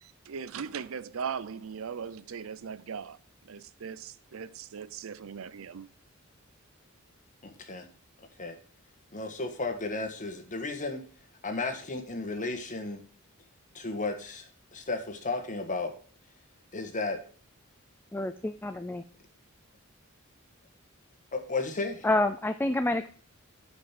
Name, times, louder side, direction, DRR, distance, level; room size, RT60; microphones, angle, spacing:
voice 1, 0.0-3.2 3.4-5.9, right 6 dB, 75° right, 0.5 m, -39 dB
voice 2, 7.4-7.9 8.4-8.6 9.1-11.0 11.4-13.0 13.7-15.9 16.7-17.2 21.3-22.1, left 3 dB, 40° left, 1.5 m, -34 dB
voice 3, 18.1-19.0 22.0-23.1, left 2 dB, 10° left, 0.4 m, -28 dB
9.1 x 5.3 x 5.8 m
head